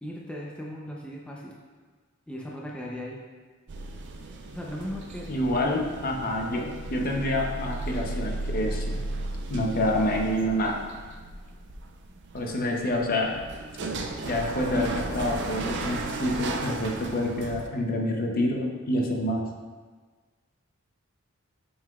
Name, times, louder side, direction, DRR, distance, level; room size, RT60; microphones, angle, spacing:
voice 1, 0.0-1.6 2.3-3.2 4.5-5.8, equal, 5° left, -3 dB, 0.6 m, -38 dB
sound 1, 3.7-17.7, right 2 dB, 55° right, 0.5 m, -35 dB
voice 2, 5.3-9.0 9.5-10.8 12.3-13.4 14.2-19.4, left 1 dB, 45° left, 1 dB, 0.7 m, -27 dB
7.5 x 5.5 x 2.3 m, 1.4 s
head